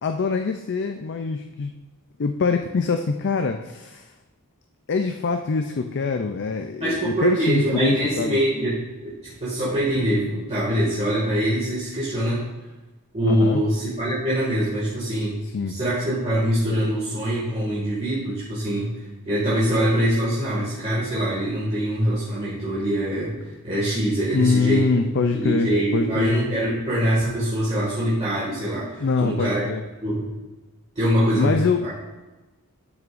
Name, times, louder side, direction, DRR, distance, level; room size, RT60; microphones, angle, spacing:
voice 1, 0.0-1.7 2.2-4.1 4.9-8.4 13.2-13.6 15.5-15.8 24.3-26.3 29.0-29.8 31.4-31.8, left 4 dB, 50° left, 6 dB, 0.5 m, -24 dB
voice 2, 6.8-8.8 9.0-12.4 13.1-15.4 15.7-18.9 19.3-23.4 23.6-24.9 25.4-29.7 30.0-30.3 31.0-32.0, right 1 dB, 30° right, -8 dB, 2.1 m, -23 dB
12.0 x 6.5 x 2.6 m, 1.2 s
head